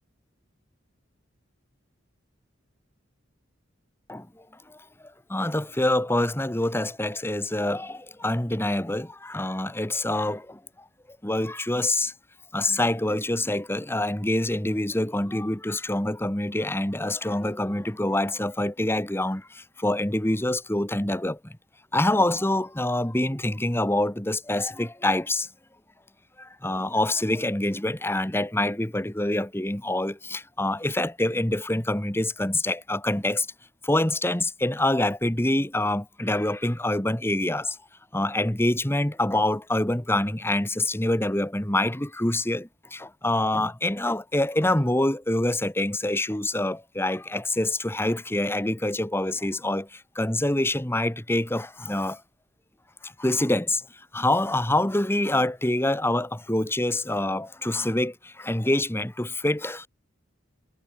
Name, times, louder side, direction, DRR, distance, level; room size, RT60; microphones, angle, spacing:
voice 1, 4.1-4.8 5.3-10.6 11.2-12.1 12.5-21.6 21.9-25.5 26.4-33.5 33.8-37.8 38.1-52.2 53.0-53.8 54.1-59.9, left 1 dB, 10° left, 1.8 m, -26 dB
head